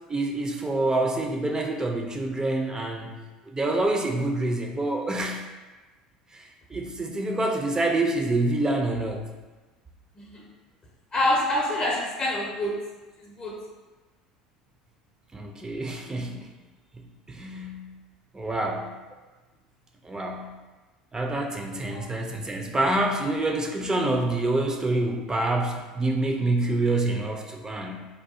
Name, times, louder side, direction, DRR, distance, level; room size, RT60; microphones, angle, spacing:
voice 1, 0.1-3.1 3.5-5.4 6.3-9.3 15.3-16.5 17.3-17.9 18.3-18.9 20.0-20.5 21.1-28.0, right 2 dB, 15° right, 2 dB, 0.4 m, -27 dB
voice 2, 11.1-12.7 13.2-13.5 21.9-22.1, left 1 dB, 30° left, -3 dB, 0.6 m, -26 dB
3.2 x 2.3 x 2.6 m, 1.2 s
figure-of-eight pair, 70°, 4 cm